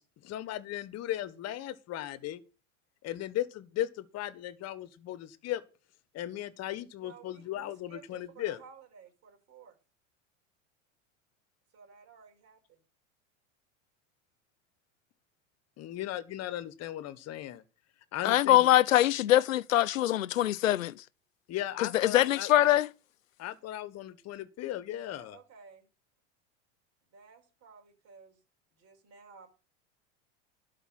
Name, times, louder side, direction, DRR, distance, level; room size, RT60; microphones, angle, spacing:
voice 1, 0.2-2.4 3.0-5.6 6.1-8.6 15.8-17.6 18.1-18.7 21.5-22.5 23.4-25.4, left 13 dB, 40° left, 1.5 m, -37 dB
voice 2, 7.0-9.8 11.7-12.8 25.0-25.9 27.1-28.4 28.8-29.5, right 6 dB, 40° right, 5.4 m, -54 dB
voice 3, 18.2-21.0 21.8-22.9, left 13 dB, 90° left, 0.7 m, -23 dB
12.0 x 5.5 x 9.0 m
hypercardioid pair, 95°, 38 cm